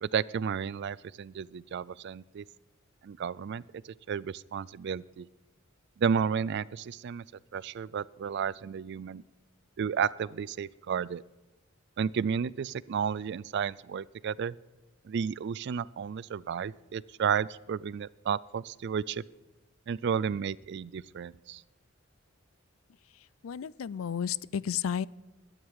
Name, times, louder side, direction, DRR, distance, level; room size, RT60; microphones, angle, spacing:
voice 1, 0.0-2.4 3.0-5.3 6.0-7.2 7.5-9.2 9.8-11.2 12.0-14.6 15.0-19.2 19.9-21.6, right 7 dB, 55° right, 22 dB, 0.3 m, -32 dB
voice 2, 23.1-25.1, left 8 dB, 85° left, 21 dB, 0.4 m, -33 dB
21.5 x 8.9 x 4.8 m, 1.1 s
head